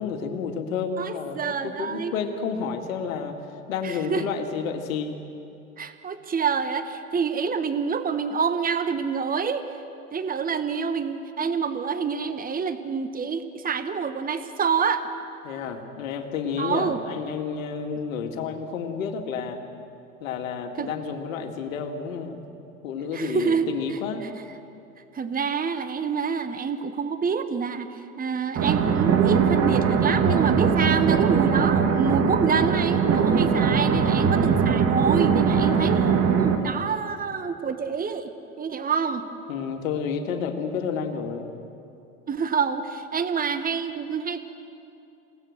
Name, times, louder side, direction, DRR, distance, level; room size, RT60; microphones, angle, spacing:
voice 1, 0.0-3.4 3.7-5.2 15.4-19.6 20.2-22.4 22.8-24.2 35.5-36.1 39.5-41.5, left 6 dB, 70° left, 5 dB, 2.3 m, -30 dB
voice 2, 1.0-2.1 3.8-4.3 5.8-9.6 10.1-15.0 16.6-17.0 20.8-20.9 23.1-24.0 25.1-39.2 42.3-44.4, right 6 dB, 20° right, 9 dB, 1.4 m, -27 dB
sound 1, 28.6-36.6, right 6 dB, 35° right, 2.3 m, -21 dB
28.5 x 18.0 x 6.6 m, 2.7 s
hypercardioid pair, 80°, 41 cm